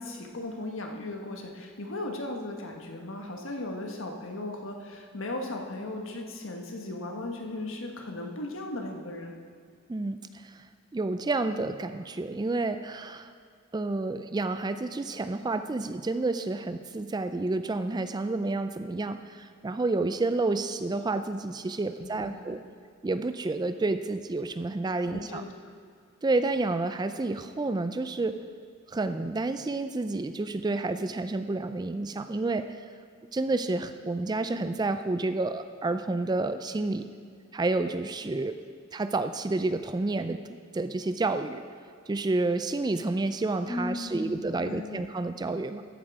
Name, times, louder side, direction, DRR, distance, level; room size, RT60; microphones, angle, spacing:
voice 1, 0.0-9.3 22.0-22.6 25.0-25.5 43.7-45.1, left 2 dB, 70° left, 2 dB, 1.4 m, -37 dB
voice 2, 9.9-10.6 10.9-13.3 13.7-22.6 23.0-25.4 26.2-28.4 28.9-32.8 33.3-37.1 37.5-38.6 38.9-40.4 40.7-41.6 42.1-45.8, right 2 dB, 20° right, 10 dB, 0.3 m, -30 dB
14.5 x 7.5 x 4.9 m, 2.2 s
head